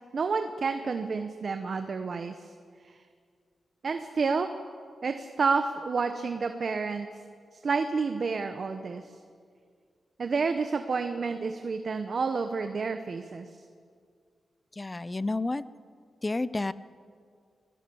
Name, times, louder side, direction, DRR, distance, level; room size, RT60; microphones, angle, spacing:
voice 1, 0.1-2.5 2.8-3.0 3.8-4.5 5.0-7.1 7.5-9.0 10.2-13.5, right 4 dB, 50° right, 7 dB, 1.0 m, -29 dB
voice 2, 14.8-15.6 16.2-16.7, left 2 dB, 20° left, 16 dB, 0.6 m, -30 dB
24.5 x 16.5 x 7.1 m, 2.1 s
wide cardioid pair, 110°, 0 cm